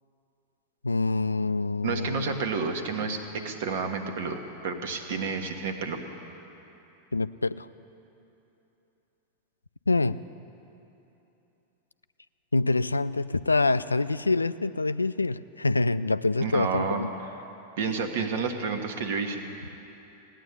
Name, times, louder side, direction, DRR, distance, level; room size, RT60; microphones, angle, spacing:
voice 1, 0.8-2.4 7.1-7.7 9.9-10.2 12.5-17.1, left 3 dB, 80° left, 15 dB, 0.3 m, -26 dB
voice 2, 1.8-6.0 16.4-17.0 17.8-19.5, right 5 dB, 55° right, 6 dB, 1.4 m, -30 dB
17.0 x 9.7 x 8.3 m, 2.9 s
figure-of-eight pair, 90°, 0 cm